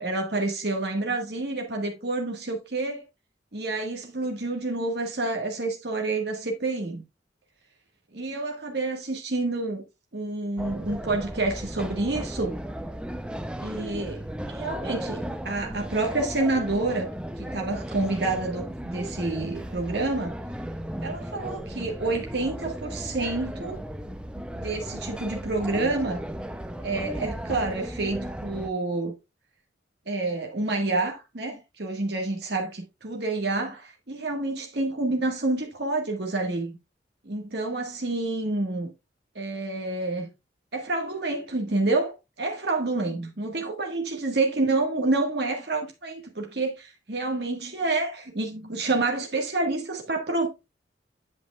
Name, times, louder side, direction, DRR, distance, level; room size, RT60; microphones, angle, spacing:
voice 1, 0.0-3.0 3.5-7.0 8.1-9.8 10.1-12.5 13.6-17.1 17.4-20.3 21.0-23.8 24.4-26.2 26.8-29.1 30.1-36.8 37.2-38.9 39.3-40.3 40.7-50.5, right 2 dB, 60° right, 1.6 m, -28 dB
sound 1, 10.6-28.7, equal, 5° right, 0.5 m, -35 dB
8.7 x 7.8 x 2.3 m
head